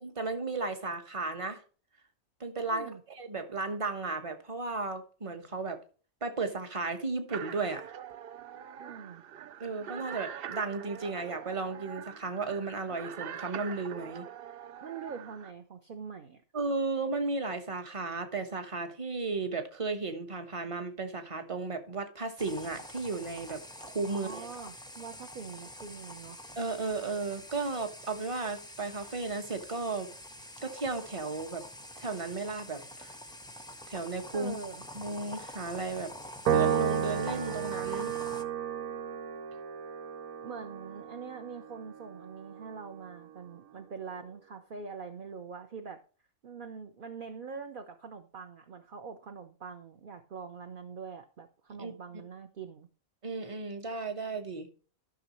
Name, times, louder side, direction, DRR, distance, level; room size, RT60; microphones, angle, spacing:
voice 1, 0.0-1.6 2.4-5.8 6.2-7.9 9.6-14.3 16.5-23.6 23.9-24.5 26.6-30.1 30.6-31.6 32.0-33.1 33.9-34.6 34.9-36.1 36.5-38.1 51.8-51.9 53.2-54.7, right 3 dB, 25° right, 1.1 m, -34 dB
voice 2, 2.7-3.0 8.8-9.2 14.8-16.4 24.1-26.4 34.3-34.8 40.4-46.0 46.4-52.9, right 5 dB, 45° right, 0.8 m, -44 dB
sound 1, 7.3-15.5, right 9 dB, 70° right, 0.5 m, -44 dB
sound 2, 22.4-38.4, left 1 dB, 5° left, 0.4 m, -46 dB
Piano, 36.5-43.0, right 9 dB, 90° right, 1.2 m, -33 dB
13.0 x 6.2 x 3.1 m
omnidirectional pair, 1.5 m